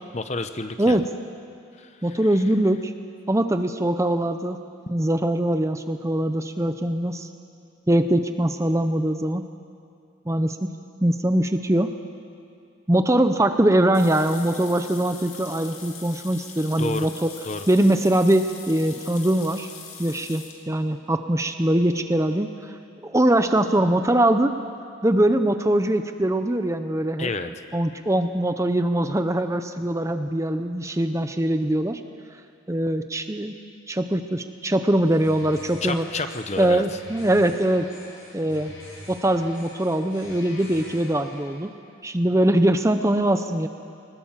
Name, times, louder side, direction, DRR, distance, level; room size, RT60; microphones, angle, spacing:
voice 1, 0.1-1.0 1.8-2.4 16.8-17.1 17.4-17.7 27.2-27.5 35.8-37.0, left 3 dB, 35° left, 9 dB, 0.8 m, -30 dB
voice 2, 2.0-2.9 3.3-4.6 4.9-7.3 7.9-9.4 10.3-10.6 11.0-11.9 12.9-17.3 17.7-19.7 20.0-22.5 23.0-24.5 25.0-27.3 27.7-32.0 32.7-33.5 33.9-36.1 36.6-37.9 38.3-38.7 39.1-41.7 42.0-43.7, right 1 dB, 15° right, 8 dB, 0.6 m, -22 dB
sound 1, 13.9-20.6, left 6 dB, 90° left, 2.6 m, -42 dB
sound 2, 35.0-41.5, left 1 dB, 65° left, 7.6 m, -44 dB
20.5 x 19.5 x 7.4 m, 2.4 s
head